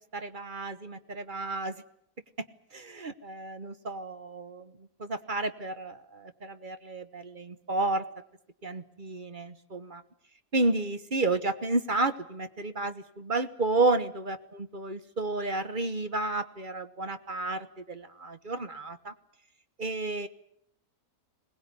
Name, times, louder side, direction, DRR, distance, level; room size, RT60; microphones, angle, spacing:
voice 1, 0.1-1.7 2.7-4.7 5.0-8.0 8.6-10.0 10.5-19.1 19.8-20.3, right 2 dB, 35° right, 11 dB, 1.1 m, -31 dB
21.5 x 19.5 x 9.5 m, 0.72 s
omnidirectional pair, 1.6 m